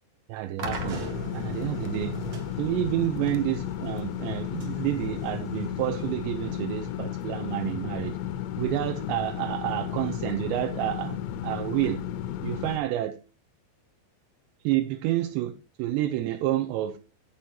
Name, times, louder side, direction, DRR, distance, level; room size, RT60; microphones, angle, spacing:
voice 1, 0.3-1.0 1.3-2.1 2.6-8.2 8.6-12.0 12.4-13.2 14.6-17.0, right 14 dB, 85° right, 2.9 m, -29 dB
sound 1, 0.6-12.8, left 11 dB, 85° left, 3.1 m, -34 dB
sound 2, 0.6-7.7, right 4 dB, 55° right, 1.8 m, -41 dB
16.0 x 6.9 x 2.9 m
omnidirectional pair, 5.1 m